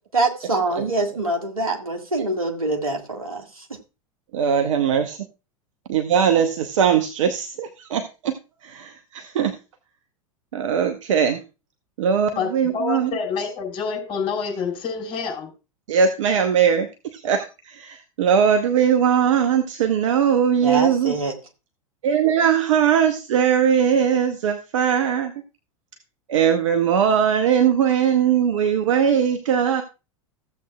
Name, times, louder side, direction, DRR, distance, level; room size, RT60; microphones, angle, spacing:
voice 1, 0.1-3.4 20.6-21.3, right 2 dB, 85° right, 1.7 m, -24 dB
voice 2, 4.3-5.2 5.9-8.4 8.6-9.5 10.5-11.4 12.0-13.2 15.9-21.2 22.0-25.3 26.3-29.8, right 8 dB, 65° right, 0.9 m, -20 dB
voice 3, 12.4-15.5, left 6 dB, 30° left, 4.4 m, -27 dB
15.5 x 7.7 x 2.3 m
figure-of-eight pair, 85°, 18 cm